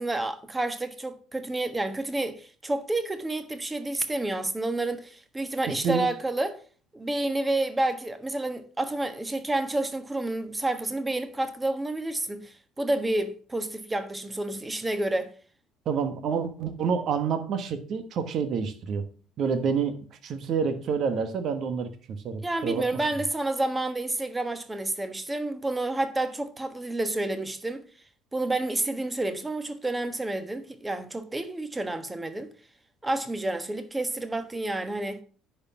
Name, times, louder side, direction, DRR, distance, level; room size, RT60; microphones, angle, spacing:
voice 1, 0.0-6.6 6.9-15.3 22.4-27.8 28.3-32.5 33.0-35.2, right 2 dB, 15° right, 1.4 m, -29 dB
voice 2, 5.7-6.1 15.8-19.0 19.4-20.0 20.2-21.9 22.2-22.9, right 6 dB, 50° right, 1.4 m, -28 dB
10.5 x 4.7 x 6.0 m
figure-of-eight pair, 55°, 0 cm